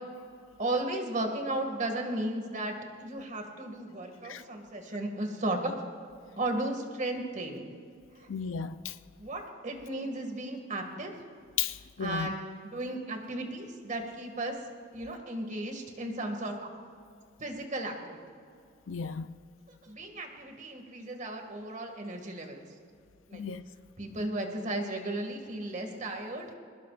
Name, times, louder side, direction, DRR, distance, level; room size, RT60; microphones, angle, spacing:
voice 1, 0.6-5.7 6.4-7.7 8.1-8.3 9.2-11.1 12.0-14.6 14.9-16.7 17.4-18.4 19.7-22.6 23.3-23.4 24.0-26.5, right 1 dB, 40° right, 2.2 m, -35 dB
voice 2, 8.3-8.9 11.6-12.3 18.9-19.3 23.3-23.7, left 7 dB, 80° left, 0.6 m, -34 dB
23.5 x 20.0 x 2.5 m
head